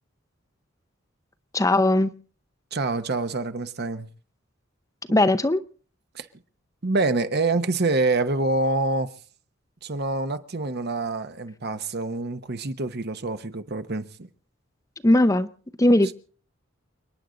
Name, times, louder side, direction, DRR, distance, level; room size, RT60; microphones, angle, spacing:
voice 1, 1.5-2.1 5.1-5.6 15.0-15.5 15.8-16.1, left 1 dB, 15° left, 0.7 m, -18 dB
voice 2, 2.7-4.1 5.1-5.2 6.1-6.3 6.8-9.1 9.8-14.3, right 3 dB, 55° right, 1.0 m, -26 dB
29.5 x 10.0 x 3.9 m
head